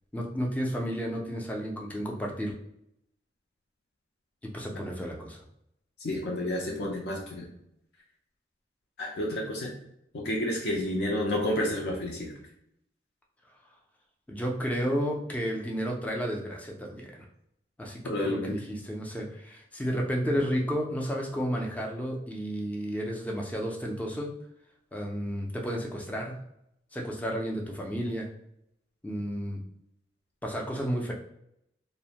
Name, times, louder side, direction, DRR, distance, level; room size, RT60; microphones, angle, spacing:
voice 1, 0.1-2.5 4.5-5.4 14.3-17.3 17.8-24.3 24.9-26.4 26.9-28.3 29.0-29.6 30.4-31.1, equal, 10° left, 0 dB, 0.4 m, -32 dB
voice 2, 6.0-7.5 9.0-9.7 10.1-12.3 18.0-18.6, left 1 dB, 65° left, -2 dB, 0.5 m, -30 dB
2.5 x 2.1 x 2.8 m, 0.78 s
head